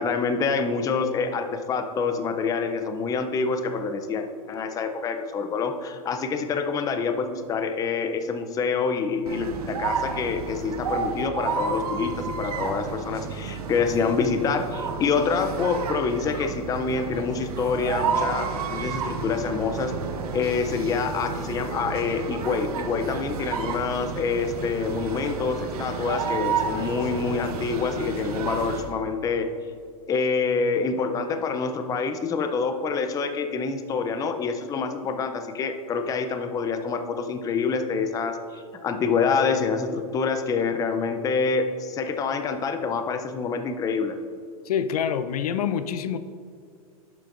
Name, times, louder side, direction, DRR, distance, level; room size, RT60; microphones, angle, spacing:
voice 1, 0.0-19.9 20.3-29.5 30.1-44.1, left 5 dB, 20° left, 7 dB, 0.5 m, -26 dB
sound 1, 9.3-28.9, right 5 dB, 80° right, 1.1 m, -31 dB
voice 2, 44.7-46.2, left 8 dB, 80° left, 12 dB, 0.6 m, -26 dB
11.0 x 7.6 x 2.5 m, 2.3 s
hypercardioid pair, 130°, 19 cm